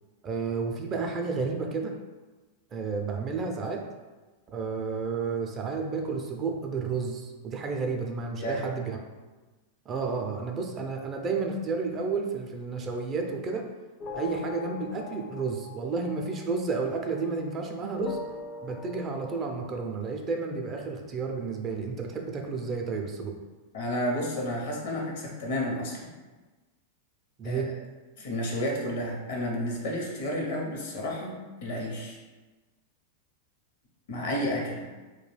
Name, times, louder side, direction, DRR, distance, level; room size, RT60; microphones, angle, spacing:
voice 1, 0.2-1.9 2.7-3.8 4.5-9.0 9.9-13.7 14.1-18.2 18.6-23.3 27.4-27.7, right 4 dB, 30° right, 2 dB, 0.4 m, -31 dB
voice 2, 8.4-8.7 23.7-26.1 27.4-27.6 28.2-31.3 31.6-32.2 34.1-34.8, equal, 65° left, -1 dB, 0.7 m, -31 dB
sound 1, 14.0-17.6 17.9-19.6, left 5 dB, 40° left, 0.4 m, -42 dB
2.3 x 2.2 x 3.2 m, 1.2 s
hypercardioid pair, 110°, 0 cm